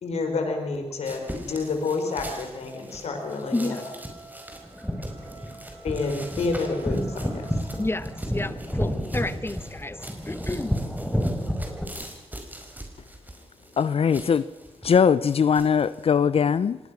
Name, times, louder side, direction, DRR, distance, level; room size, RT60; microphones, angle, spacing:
voice 1, 0.0-3.8 5.8-7.5, left 3 dB, 85° left, 4 dB, 4.0 m, -29 dB
sound 1, 1.0-16.1, right 1 dB, 15° right, 4.7 m, -43 dB
Wind instrument woodwind instrument, 3.2-8.2, right 3 dB, 35° right, 6.5 m, -49 dB
voice 2, 3.5-4.1 4.6-5.3 7.8-10.8, left 2 dB, 20° left, 14 dB, 1.2 m, -32 dB
sound 2, 4.6-11.8, equal, ahead, 3.8 m, -30 dB
voice 3, 13.8-14.5 14.8-16.8, left 7 dB, 65° left, 16 dB, 0.6 m, -20 dB
24.5 x 19.0 x 6.0 m, 1.1 s
cardioid pair, 65°, 11 cm